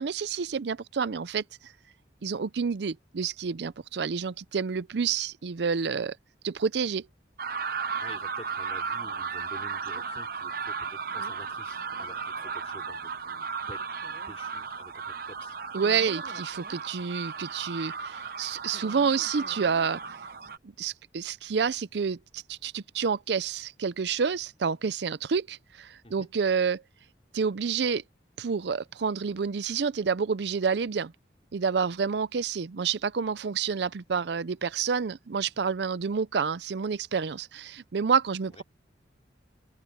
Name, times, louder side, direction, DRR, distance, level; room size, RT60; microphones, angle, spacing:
voice 1, 0.0-1.7 2.2-6.2 6.4-7.1 15.7-20.0 20.6-26.8 27.3-28.0 28.4-31.1 31.5-38.6, right 6 dB, 70° right, 0.5 m, -29 dB
sound 1, 7.4-20.6, right 5 dB, 55° right, 0.9 m, -35 dB
voice 2, 7.7-15.6 26.0-26.3 38.5-38.6, left 1 dB, 35° left, 4.1 m, -49 dB
head